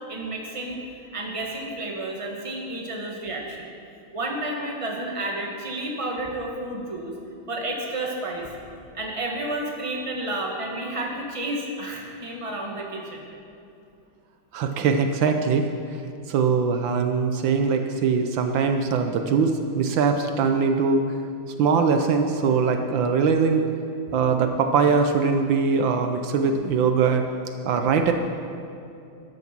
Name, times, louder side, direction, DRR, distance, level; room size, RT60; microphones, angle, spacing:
voice 1, 0.1-0.8 1.1-3.7 4.1-7.1 7.5-8.5 8.9-13.2, right 1 dB, 15° right, 0 dB, 1.6 m, -31 dB
voice 2, 14.5-15.7 16.3-21.2 21.6-23.7 24.1-27.2 27.6-28.1, right 5 dB, 75° right, 6 dB, 1.5 m, -22 dB
13.5 x 11.0 x 6.0 m, 2.6 s
omnidirectional pair, 2.2 m